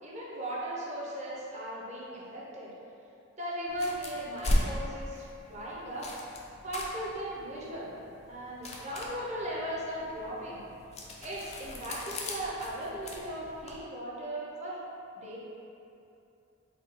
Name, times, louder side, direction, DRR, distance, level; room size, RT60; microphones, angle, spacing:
voice 1, 0.0-2.7 3.4-6.1 6.6-7.9 8.3-10.6 11.2-14.8 15.1-15.4, right 1 dB, 30° right, -6 dB, 0.7 m, -37 dB
sound 1, 3.7-13.8, left 1 dB, 30° left, 0.4 m, -37 dB
4.1 x 2.3 x 4.2 m, 2.8 s
head